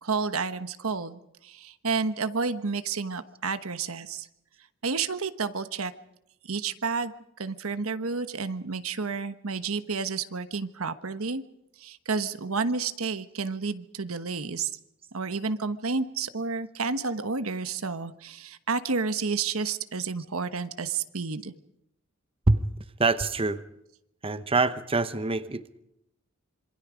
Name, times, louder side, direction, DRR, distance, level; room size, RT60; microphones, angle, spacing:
voice 1, 0.0-4.3 4.8-5.9 6.4-7.1 7.4-11.4 11.8-14.7 15.1-21.5, right 4 dB, 90° right, 11 dB, 1.2 m, -30 dB
voice 2, 23.0-23.6 24.2-25.8, right 3 dB, 25° right, 11 dB, 0.9 m, -25 dB
26.5 x 24.0 x 5.1 m, 0.83 s
head